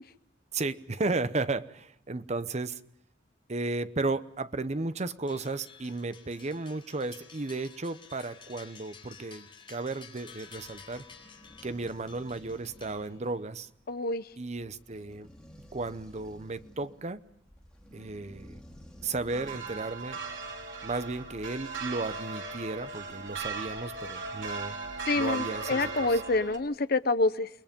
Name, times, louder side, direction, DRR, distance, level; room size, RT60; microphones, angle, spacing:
voice 1, 0.5-2.8 3.5-11.0 11.6-13.7 14.4-15.3 15.7-17.2 17.9-18.6 19.0-20.2 20.8-24.8 25.2-26.2, right 3 dB, 35° right, 0.8 m, -34 dB
sound 1, 5.3-13.4, left 6 dB, 25° left, 4.4 m, -52 dB
sound 2, 10.3-20.0, equal, 5° left, 2.6 m, -53 dB
voice 2, 13.9-14.2 25.1-27.5, left 3 dB, 55° left, 0.8 m, -27 dB
sound 3, 19.3-26.6, right 4 dB, 80° right, 3.4 m, -38 dB
29.0 x 21.0 x 5.3 m
head